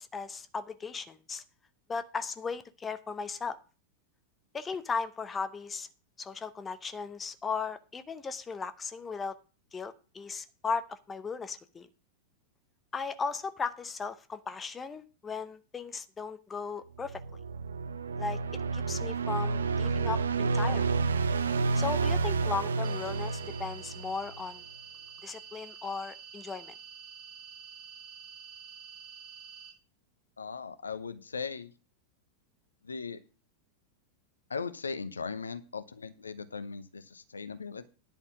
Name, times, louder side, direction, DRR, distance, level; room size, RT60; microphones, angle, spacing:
voice 1, 0.0-1.4 1.9-3.6 4.5-5.9 6.2-9.4 9.7-11.9 12.9-17.2 18.2-18.4 18.7-20.9 21.7-24.6 25.2-26.7, left 5 dB, 15° left, 11 dB, 0.9 m, -36 dB
sound 1, 17.0-24.4, right 4 dB, 70° right, 0.7 m, -30 dB
sound 2, 22.8-29.7, right 7 dB, 25° right, 5.1 m, -48 dB
voice 2, 30.4-31.7 32.9-33.2 34.5-37.9, left 5 dB, 75° left, 12 dB, 0.8 m, -38 dB
10.5 x 5.4 x 7.4 m, 0.35 s
figure-of-eight pair, 90°, 0 cm